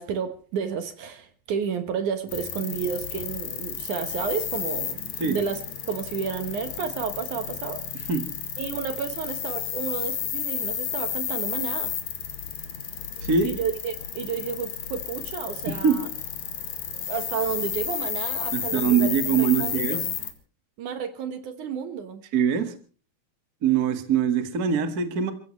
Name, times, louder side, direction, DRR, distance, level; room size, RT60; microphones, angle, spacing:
voice 1, 0.0-5.6 5.9-8.1 8.6-11.9 13.4-16.1 17.1-20.0 20.8-22.2, right 7 dB, 60° right, 9 dB, 2.4 m, -31 dB
sound 1, 2.3-20.3, left 9 dB, 55° left, 2.9 m, -32 dB
voice 2, 13.2-13.5 15.7-16.0 18.5-20.0 22.3-22.7 23.6-25.3, right 7 dB, 45° right, 8 dB, 1.2 m, -23 dB
28.5 x 15.5 x 3.2 m, 0.38 s
omnidirectional pair, 4.5 m